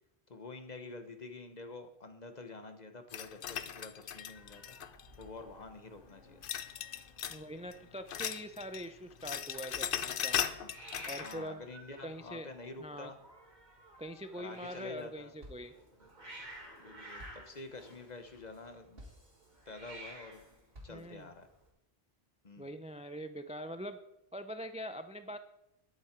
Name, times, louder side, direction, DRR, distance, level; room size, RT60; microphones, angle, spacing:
voice 1, 0.3-4.8 5.2-6.4 10.6-10.7 11.2-13.2 14.3-15.3 16.8-19.0 19.7-20.4 20.8-21.5 22.4-22.8, left 3 dB, 40° left, 8 dB, 1.2 m, -48 dB
sound 1, 3.1-5.2 6.4-7.4 7.7-8.9 9.1-11.4, left 9 dB, 60° left, 0.8 m, -38 dB
Hiss, 4.3-21.7, right 1 dB, 45° right, 2.9 m, -54 dB
voice 2, 7.3-10.4 11.1-11.6 12.0-12.5 12.8-13.1 14.0-15.7 20.9-21.3 22.6-24.0 24.3-25.4, equal, 10° right, 10 dB, 0.3 m, -43 dB
sound 2, 14.5-15.1 15.4-21.5, equal, 60° right, 2.6 m, -57 dB
12.5 x 11.0 x 4.5 m, 0.87 s
omnidirectional pair, 1.1 m